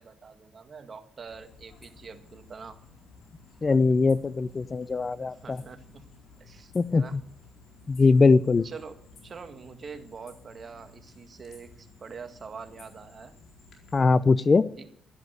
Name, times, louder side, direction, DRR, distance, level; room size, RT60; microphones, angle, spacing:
voice 1, 0.0-2.8 5.2-6.1 6.4-7.2 8.6-13.4 14.8-14.9, right 5 dB, 40° right, 7 dB, 1.8 m, -45 dB
sound 1, 1.3-14.0, left 3 dB, 65° left, 4.3 m, -54 dB
voice 2, 3.6-5.6 6.7-7.2 7.9-8.7 13.9-14.6, left 4 dB, 30° left, 17 dB, 0.5 m, -21 dB
12.5 x 11.0 x 8.0 m, 0.64 s
cardioid pair, 90°, 0 cm